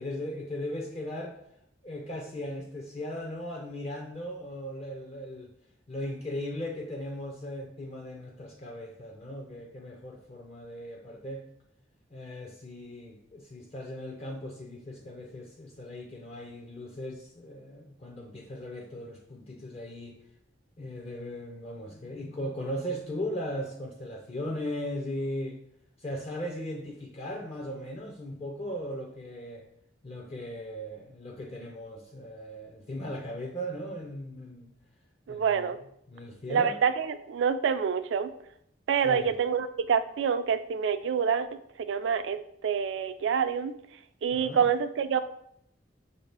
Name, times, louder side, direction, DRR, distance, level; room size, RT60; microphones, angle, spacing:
voice 1, 0.0-1.3 1.8-5.5 5.9-11.4 12.1-20.2 20.8-25.6 26.0-29.7 30.0-34.7 35.3-35.8 36.1-36.8 39.0-39.4 44.3-44.7, equal, 35° left, 1 dB, 0.4 m, -38 dB
voice 2, 35.3-35.8 36.5-38.3 38.9-41.5 41.9-43.7 44.2-45.2, right 7 dB, 75° right, 11 dB, 0.3 m, -27 dB
5.7 x 2.7 x 3.3 m, 0.72 s
head